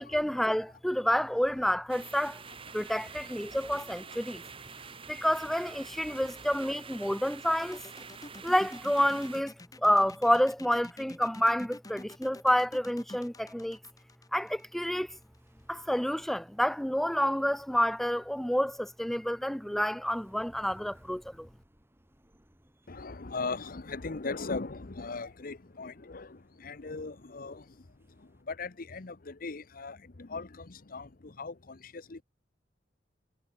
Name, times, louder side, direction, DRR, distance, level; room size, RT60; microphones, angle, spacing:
voice 1, 0.0-2.4 2.7-4.4 5.1-7.8 8.4-13.8 14.3-15.2 15.7-21.5, equal, ahead, 0.3 m, -29 dB
sound 1, 1.9-9.4, right 5 dB, 30° right, 1.1 m, -47 dB
sound 2, 7.6-15.4, left 2 dB, 20° left, 1.3 m, -48 dB
sound 3, 14.9-28.4, equal, 15° right, 3.0 m, -64 dB
voice 2, 22.9-27.9 28.2-32.2, left 3 dB, 50° left, 0.9 m, -39 dB
head